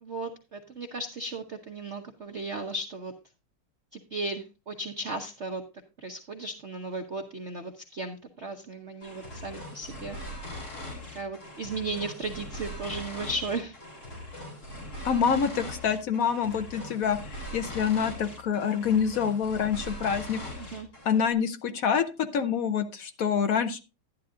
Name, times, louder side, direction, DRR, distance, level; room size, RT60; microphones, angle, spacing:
voice 1, 0.0-3.1 3.9-5.6 6.0-10.2 11.1-13.8 20.6-20.9, right 2 dB, 60° right, 4 dB, 0.7 m, -35 dB
sound 1, 9.0-21.2, left 1 dB, 45° left, 4.1 m, -41 dB
voice 2, 15.0-20.4 21.1-23.8, left 7 dB, 65° left, 9 dB, 0.9 m, -26 dB
11.5 x 11.0 x 2.5 m, 0.29 s
omnidirectional pair, 2.3 m